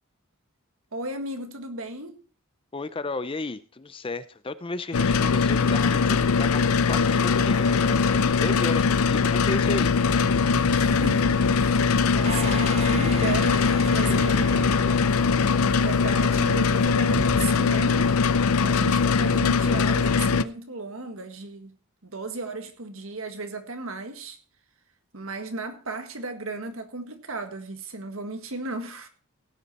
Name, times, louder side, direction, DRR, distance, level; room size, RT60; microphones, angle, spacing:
voice 1, 0.9-2.2 10.7-15.0 15.6-18.2 18.6-21.7 22.0-24.4 25.1-29.1, right 3 dB, 70° right, 1.8 m, -35 dB
voice 2, 2.7-6.6 6.9-9.9, left 3 dB, 25° left, 0.5 m, -33 dB
sound 1, 4.9-20.4, left 5 dB, 90° left, 0.6 m, -21 dB
sound 2, 6.4-17.5, equal, 10° right, 4.3 m, -38 dB
sound 3, 12.2-15.9, right 4 dB, 30° right, 0.9 m, -37 dB
17.0 x 8.3 x 4.2 m
head